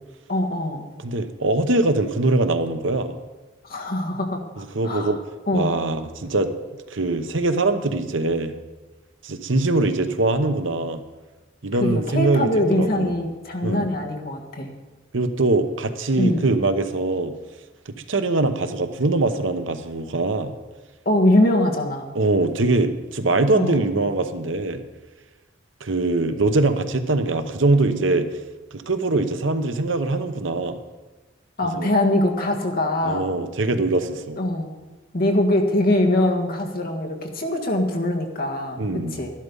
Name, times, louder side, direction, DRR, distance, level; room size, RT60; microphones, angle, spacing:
voice 1, 0.3-0.9 3.6-5.1 5.5-5.7 11.8-14.7 16.2-16.4 21.1-22.1 23.5-23.8 31.6-33.3 34.4-34.7 35.1-38.8 39.1-39.3, left 1 dB, 50° left, 2 dB, 1.7 m, -22 dB
voice 2, 1.0-3.1 4.6-5.2 5.5-6.5 6.9-8.5 9.2-11.0 11.6-13.1 13.6-13.9 15.1-17.3 17.9-20.5 22.1-24.8 25.8-28.3 28.7-30.8 31.7-31.9 33.0-34.4 38.8-39.2, right 2 dB, 75° right, 9 dB, 0.9 m, -22 dB
12.0 x 12.0 x 5.4 m, 1.2 s
head